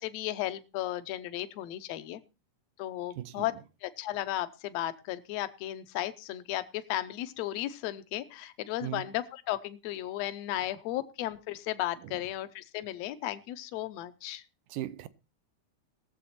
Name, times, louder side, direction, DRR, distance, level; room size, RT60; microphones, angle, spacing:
voice 1, 0.0-2.2 2.8-3.5 3.8-14.4, left 14 dB, 70° left, 1.8 m, -35 dB
voice 2, 14.7-15.1, right 14 dB, 90° right, 2.3 m, -37 dB
19.5 x 7.5 x 4.2 m
omnidirectional pair, 3.5 m